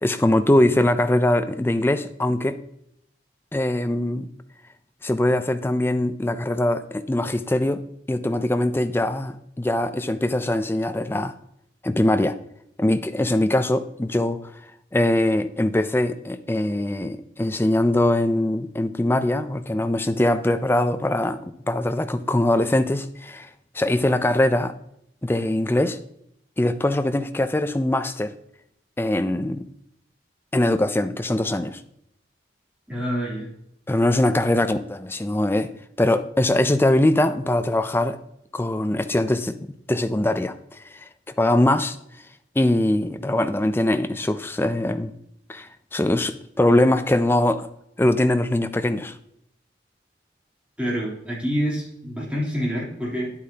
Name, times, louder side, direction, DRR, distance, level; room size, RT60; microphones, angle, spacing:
voice 1, 0.0-2.6 3.5-4.3 5.0-7.8 8.1-11.3 11.8-12.4 12.8-14.5 14.9-23.5 23.7-24.7 25.2-26.0 26.6-28.3 29.0-29.6 30.5-31.8 33.9-35.7 36.0-38.2 38.5-39.5 39.9-41.1 41.4-42.0 42.6-45.1 45.5-47.7 48.0-49.1, left 1 dB, 15° left, 10 dB, 0.4 m, -22 dB
voice 2, 32.9-33.5 50.8-53.3, equal, 5° right, -7 dB, 3.3 m, -27 dB
9.5 x 8.4 x 2.8 m, 0.74 s
head